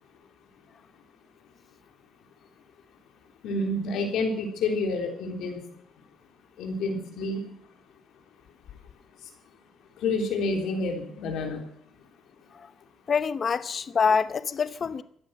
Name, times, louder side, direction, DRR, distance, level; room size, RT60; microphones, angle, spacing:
voice 1, 3.4-5.6 6.6-7.5 10.0-11.6, left 2 dB, 85° left, 3.6 m, -28 dB
voice 2, 13.1-15.0, left 5 dB, 45° left, 0.8 m, -25 dB
15.0 x 11.0 x 7.6 m
cardioid pair, 90°, 0 cm